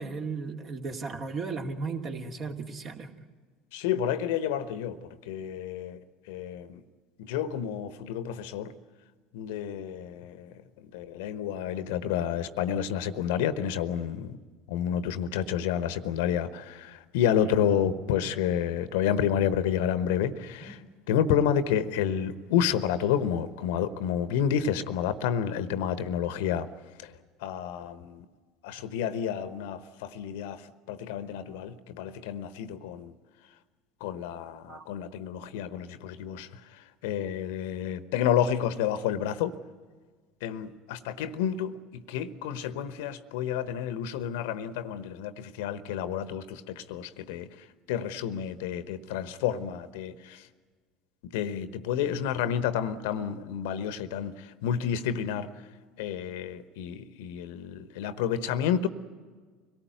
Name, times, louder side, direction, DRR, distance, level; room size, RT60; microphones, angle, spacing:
voice 1, 0.0-3.1 20.5-20.7 34.7-34.8, right 4 dB, 40° right, 4 dB, 2.3 m, -35 dB
voice 2, 3.7-6.0 6.3-6.8 7.2-8.7 9.3-14.4 14.7-20.8 21.1-26.7 27.0-27.1 27.4-28.3 28.6-33.1 34.0-39.6 40.4-47.5 47.9-50.5 51.2-55.5 56.0-58.9, left 9 dB, 65° left, 14 dB, 1.0 m, -30 dB
25.0 x 18.0 x 9.3 m, 1.5 s
figure-of-eight pair, 70°, 0 cm